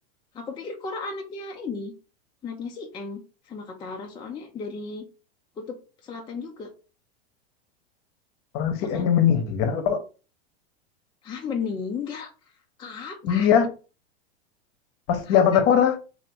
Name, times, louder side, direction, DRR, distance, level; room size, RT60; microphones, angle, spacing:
voice 1, 0.3-1.9 2.4-5.0 5.6-6.7 8.8-9.1 11.2-13.5 15.2-15.6, left 5 dB, 15° left, 0.4 m, -35 dB
voice 2, 8.5-10.0 13.2-13.7 15.1-16.0, left 8 dB, 45° left, 0.8 m, -20 dB
2.8 x 2.5 x 3.4 m
hypercardioid pair, 115°, 32 cm